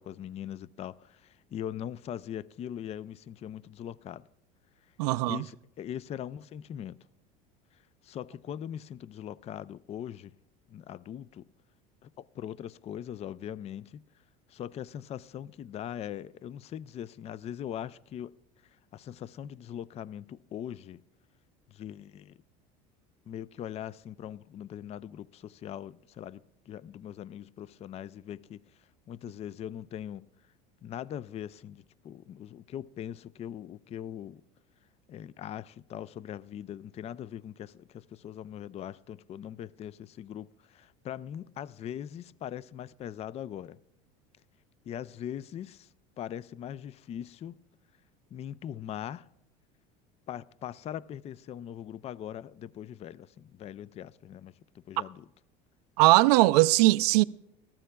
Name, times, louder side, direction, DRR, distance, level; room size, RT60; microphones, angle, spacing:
voice 1, 0.0-4.2 5.3-7.0 8.0-10.3 10.7-11.4 12.0-14.0 14.5-18.3 18.9-21.0 21.7-22.4 23.3-28.6 29.1-30.3 30.8-34.4 35.1-43.8 44.9-45.9 46.2-47.6 48.3-49.3 50.3-55.3, left 10 dB, 35° left, 0.4 m, -41 dB
voice 2, 5.0-5.4 56.0-57.2, right 20 dB, 85° right, 0.4 m, -20 dB
21.0 x 14.5 x 2.3 m
supercardioid pair, 110°, 20 cm